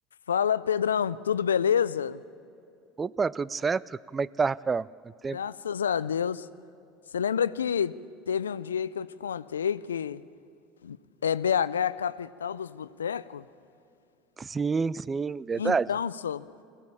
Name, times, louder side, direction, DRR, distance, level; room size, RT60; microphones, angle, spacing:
voice 1, 0.3-2.2 5.3-6.5 7.1-7.9 8.3-10.2 10.8-11.0 11.2-13.4 15.6-16.4, left 8 dB, 85° left, 17 dB, 0.4 m, -28 dB
voice 2, 3.0-4.9 5.2-5.4 14.4-15.9, right 5 dB, 25° right, 22 dB, 0.4 m, -28 dB
21.5 x 16.0 x 8.7 m, 2.5 s
hypercardioid pair, 75°, 0 cm